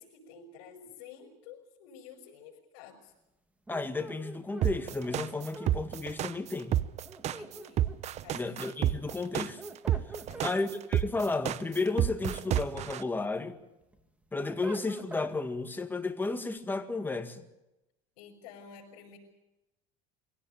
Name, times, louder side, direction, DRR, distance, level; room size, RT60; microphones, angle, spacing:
voice 1, 0.0-3.1 7.3-7.9 8.2-8.6 8.9-9.0 10.3-10.6 18.2-19.2, left 7 dB, 75° left, 5.7 m, -51 dB
voice 2, 3.7-6.8 8.3-9.6 10.4-13.6 14.3-17.4, left 3 dB, 10° left, 1.9 m, -33 dB
sound 1, 3.7-5.8 7.1-8.2 9.3-10.6 12.0-13.1 13.6-15.4, right 1 dB, 5° right, 2.4 m, -44 dB
sound 2, 4.6-13.0, right 12 dB, 40° right, 0.8 m, -29 dB
24.0 x 17.0 x 8.8 m
supercardioid pair, 120°, 18 cm